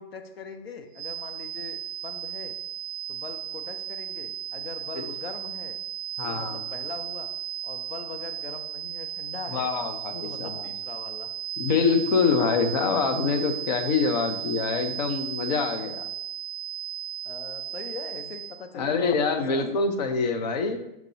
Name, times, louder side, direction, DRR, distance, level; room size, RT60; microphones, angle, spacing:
voice 1, 0.0-2.6 3.1-5.8 6.3-7.3 7.6-9.7 10.2-11.3 17.2-19.8, left 5 dB, 85° left, 7 dB, 0.6 m, -41 dB
sound 1, 0.9-18.7, right 11 dB, 55° right, 0.5 m, -35 dB
voice 2, 6.2-6.6 9.5-10.7 11.6-16.0 18.7-20.8, left 5 dB, 45° left, 6 dB, 0.5 m, -25 dB
5.9 x 2.5 x 2.8 m, 0.85 s
hypercardioid pair, 135°, 29 cm